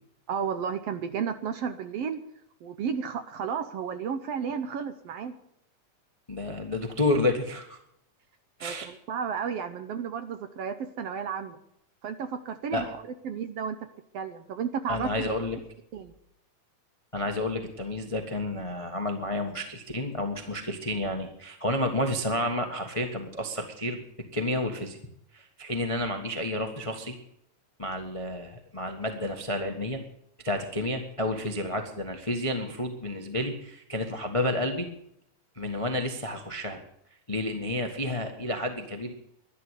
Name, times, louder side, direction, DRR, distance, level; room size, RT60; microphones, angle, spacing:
voice 1, 0.3-2.2 2.6-5.3 8.6-11.6 12.0-12.9 13.2-13.8 14.1-15.3 15.9-16.1, right 7 dB, 70° right, 9 dB, 1.6 m, -32 dB
voice 2, 6.3-7.8 8.6-8.9 12.7-12.8 14.9-15.6 17.1-24.0 24.3-25.0 25.3-27.2 27.8-30.0 30.4-34.9 35.5-36.8 37.3-39.1, left 1 dB, 45° left, 4 dB, 0.4 m, -30 dB
12.5 x 11.5 x 8.2 m, 0.74 s
omnidirectional pair, 3.6 m